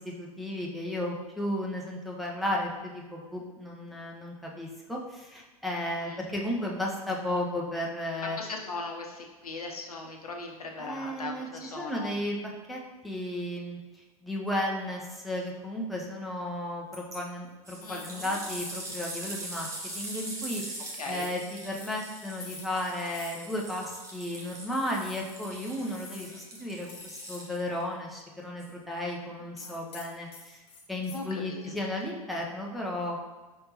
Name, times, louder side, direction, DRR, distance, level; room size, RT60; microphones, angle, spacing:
voice 1, 0.0-8.4 10.8-12.4 12.7-13.8 14.2-30.6 30.9-33.2, left 1 dB, ahead, -3 dB, 0.7 m, -34 dB
voice 2, 8.2-12.1 17.8-18.4 21.0-21.3 29.2-29.9 31.1-31.7, left 3 dB, 80° left, 1 dB, 0.7 m, -39 dB
sound 1, 16.9-17.2 17.6-27.8 28.6-28.7, right 1 dB, 15° right, 1.0 m, -42 dB
sound 2, 17.8-18.2 18.5-18.9 19.2-19.5 19.8-20.1 20.4-20.7 21.1-21.4 21.7-22.0 22.4-22.8 23.1-23.4 23.8-23.9 24.8-25.3 25.7-26.4 26.9-27.5 27.7-27.8 29.6-31.2, left 4 dB, 30° left, 1.0 m, -47 dB
5.4 x 3.4 x 2.9 m, 1.2 s
figure-of-eight pair, 90°, 19 cm